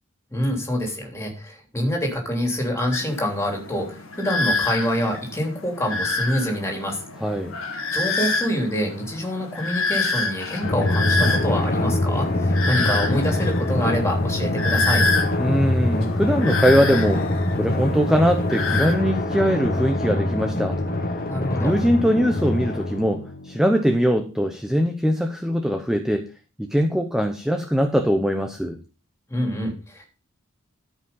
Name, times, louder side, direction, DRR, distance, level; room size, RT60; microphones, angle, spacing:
voice 1, 0.3-7.0 7.9-15.1 21.3-21.7 29.3-30.1, equal, 15° left, 1 dB, 3.3 m, -26 dB
sound 1, 2.9-18.9, left 3 dB, 75° left, 1.8 m, -28 dB
voice 2, 7.2-7.6 15.4-17.2 17.6-20.8 21.6-26.2 26.6-28.8, equal, ahead, 6 dB, 0.8 m, -21 dB
Drum, 10.6-23.7, left 1 dB, 45° left, 1.7 m, -24 dB
13.0 x 5.7 x 5.5 m, 0.34 s
head